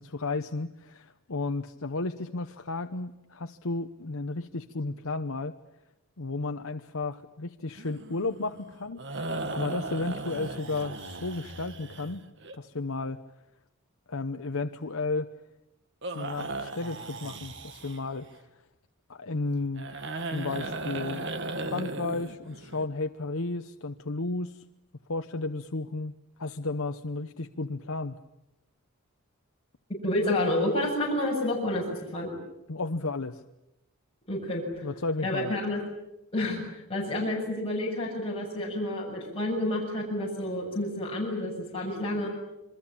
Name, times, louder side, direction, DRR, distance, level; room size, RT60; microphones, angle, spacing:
voice 1, 0.0-5.5 6.2-12.3 12.5-13.2 14.1-15.3 16.1-18.3 19.1-19.9 20.3-21.3 21.7-24.6 25.1-26.1 26.4-28.1 32.7-33.4 34.8-35.5, left 3 dB, 80° left, 7 dB, 1.0 m, -33 dB
sound 1, 7.8-12.5 16.0-18.3 19.7-22.9, right 2 dB, 55° right, 1.9 m, -37 dB
voice 2, 30.0-32.3 34.3-34.9 35.2-35.8 36.3-42.3, left 1 dB, 25° left, -3 dB, 7.2 m, -29 dB
28.0 x 24.0 x 8.8 m, 0.89 s
head